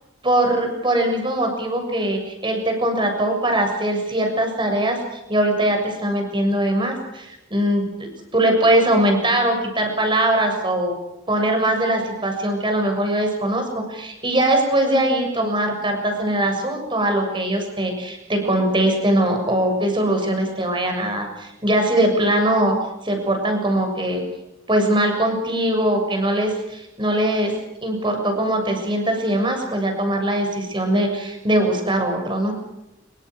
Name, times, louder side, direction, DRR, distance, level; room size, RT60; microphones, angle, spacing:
voice 1, 0.2-5.0 5.3-7.9 8.3-10.9 11.3-22.8 23.0-24.2 24.7-27.5 27.8-32.5, right 1 dB, 25° right, 4 dB, 7.1 m, -21 dB
26.5 x 24.0 x 6.4 m, 0.90 s
head